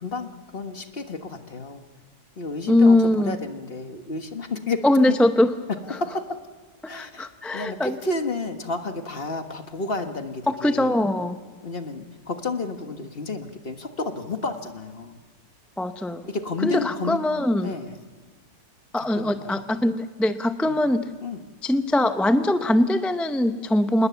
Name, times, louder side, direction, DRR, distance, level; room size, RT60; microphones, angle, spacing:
voice 1, 0.0-1.8 2.4-4.8 5.1-5.2 5.9-6.4 6.9-10.9 11.6-15.2 16.2-17.2 17.6-18.0 19.0-19.6 20.6-20.8 21.2-21.4, left 3 dB, 40° left, 6 dB, 1.6 m, -31 dB
voice 2, 2.7-3.4 4.8-5.5 6.8-7.9 10.5-11.4 15.8-16.3 16.6-17.7 18.9-21.0 21.6-24.1, left 1 dB, ahead, 8 dB, 0.4 m, -21 dB
27.0 x 20.0 x 7.0 m, 1.4 s
omnidirectional pair, 1.6 m